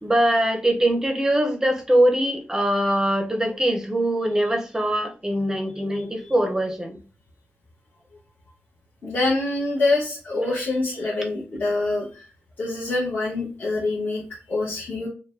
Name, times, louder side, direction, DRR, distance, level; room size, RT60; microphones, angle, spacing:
voice 1, 0.0-7.0 10.4-10.5, right 1 dB, 15° right, 3 dB, 0.7 m, -22 dB
voice 2, 9.0-12.3 12.6-15.1, left 2 dB, 45° left, -7 dB, 1.3 m, -25 dB
5.6 x 2.2 x 2.6 m, 0.35 s
wide cardioid pair, 160°, 4 cm